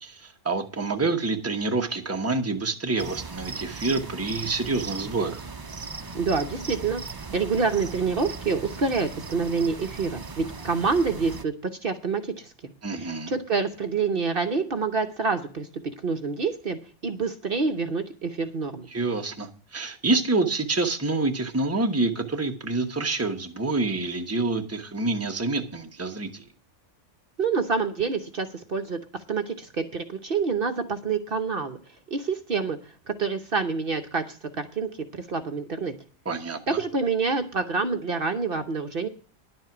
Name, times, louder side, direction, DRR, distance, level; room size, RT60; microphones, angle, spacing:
voice 1, 0.0-5.4 12.8-13.3 18.9-26.4 36.2-36.8, right 3 dB, 15° right, 4 dB, 1.1 m, -27 dB
sound 1, 3.0-11.4, right 4 dB, 30° right, 0.4 m, -38 dB
voice 2, 6.1-7.0 7.3-12.5 12.9-15.7 16.0-18.9 27.4-29.0 29.3-31.8 32.1-32.8 33.1-35.9 36.7-39.1, right 4 dB, 50° right, 7 dB, 1.1 m, -27 dB
11.0 x 7.6 x 6.0 m, 0.40 s
omnidirectional pair, 1.2 m